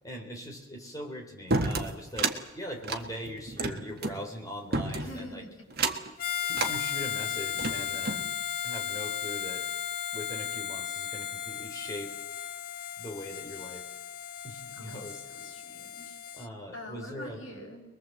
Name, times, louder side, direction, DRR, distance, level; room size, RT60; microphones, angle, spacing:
voice 1, 0.0-5.4 6.4-8.3 8.6-9.7 10.1-12.2 13.0-13.9 14.4-15.2 16.3-17.4, equal, 15° left, 1 dB, 3.6 m, -41 dB
sound 1, 1.5-2.4 2.8-4.2 4.7-5.2 5.7-6.1 6.5-6.8 7.3-8.3, right 3 dB, 50° right, 1.4 m, -30 dB
voice 2, 5.0-5.5 14.8-15.0 15.3-16.2 16.7-17.8, left 1 dB, 75° left, 0 dB, 6.2 m, -44 dB
Harmonica, 6.2-16.5, left 9 dB, 45° left, 0.8 m, -35 dB
22.0 x 21.5 x 7.8 m, 1.0 s
head